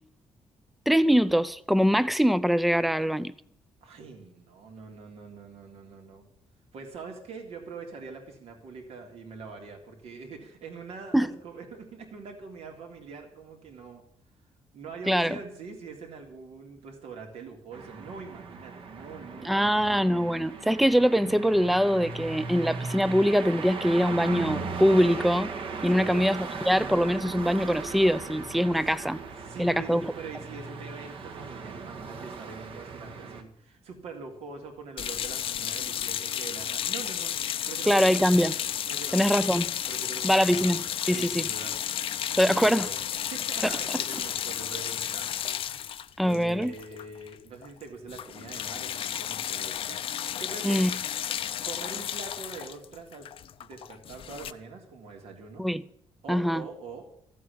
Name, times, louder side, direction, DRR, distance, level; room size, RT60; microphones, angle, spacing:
voice 1, 0.9-3.3 11.1-11.3 15.1-15.4 19.4-25.5 25.8-29.2 29.6-30.1 37.9-38.6 39.1-39.6 40.2-41.5 42.4-42.9 46.2-46.7 50.6-50.9 55.6-55.8 56.3-56.7, equal, ahead, 0.5 m, -23 dB
voice 2, 3.8-6.2 6.7-14.0 14.7-20.0 25.8-26.2 28.7-28.8 29.4-37.3 37.7-38.3 38.9-39.5 39.9-40.6 41.1-45.6 46.2-50.9 51.6-53.3 53.6-55.7 56.2-57.0, right 4 dB, 80° right, 3.5 m, -43 dB
sound 1, 17.7-33.4, right 4 dB, 60° right, 1.8 m, -38 dB
sound 2, 35.0-47.3 47.6-47.8 48.1-54.5, left 10 dB, 60° left, 0.7 m, -32 dB
14.5 x 8.6 x 8.7 m
cardioid pair, 140°, 11 cm